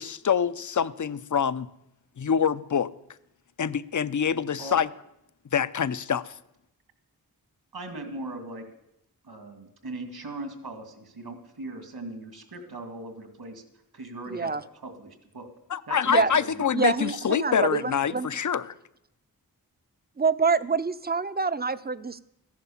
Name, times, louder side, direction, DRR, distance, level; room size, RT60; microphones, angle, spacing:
voice 1, 0.0-1.7 2.2-2.9 3.6-4.9 5.5-6.3 15.7-18.7, left 7 dB, 55° left, 0.6 m, -25 dB
voice 2, 7.7-8.7 9.2-13.6 13.9-15.5 15.9-16.8, right 2 dB, 75° right, 2.4 m, -39 dB
voice 3, 14.3-14.6 16.1-16.3 16.7-18.3 20.2-22.2, right 4 dB, 25° right, 0.6 m, -26 dB
14.0 x 11.0 x 7.2 m
wide cardioid pair, 75°, 37 cm